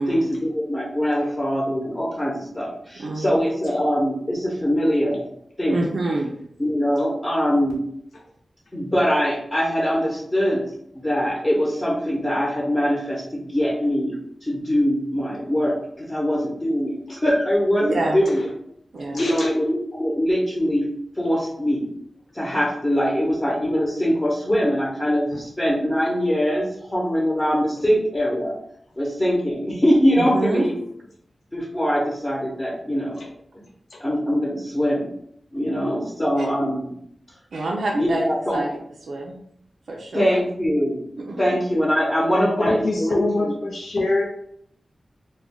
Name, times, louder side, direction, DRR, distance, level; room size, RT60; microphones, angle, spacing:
voice 1, 0.1-5.2 5.6-5.8 6.6-7.8 8.7-10.6 10.9-14.2 14.4-18.4 19.1-20.9 21.2-21.9 22.3-28.5 29.0-30.7 31.5-33.2 34.0-35.1 35.5-36.9 37.9-38.6 40.1-41.0 41.4-43.6, equal, 25° left, -4 dB, 0.8 m, -22 dB
voice 2, 2.9-3.4 5.7-6.3 17.8-18.2 18.9-19.2 30.2-30.6 36.4-36.5 37.5-38.2 38.5-38.8 39.1-39.4 39.9-40.4 41.2-41.4, right 2 dB, 85° right, -2 dB, 0.4 m, -26 dB
voice 3, 19.1-19.5 25.3-25.4 33.2-33.3 33.9-34.0 36.0-36.1 42.4-44.2, left 2 dB, 80° left, -1 dB, 0.4 m, -25 dB
2.2 x 2.1 x 3.5 m, 0.70 s
wide cardioid pair, 60°, 0 cm